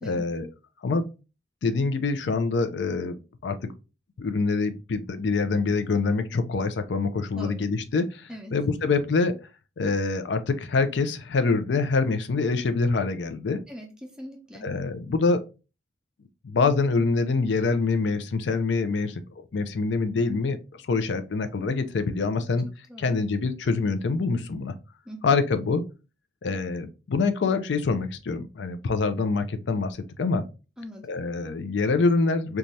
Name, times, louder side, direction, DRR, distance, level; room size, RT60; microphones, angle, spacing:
voice 1, 0.1-0.5 0.8-1.0 1.6-3.7 4.2-9.3 9.8-13.6 14.6-15.4 16.4-19.2 19.5-20.6 20.8-22.7 23.0-24.7 25.2-25.8 26.4-30.4 31.1-32.6, left 4 dB, 85° left, 0.4 m, -25 dB
voice 2, 7.3-7.7 8.3-8.5 13.7-14.7 22.9-23.1 25.1-25.4 30.8-31.1, equal, 5° right, 0.6 m, -41 dB
2.6 x 2.3 x 3.1 m
head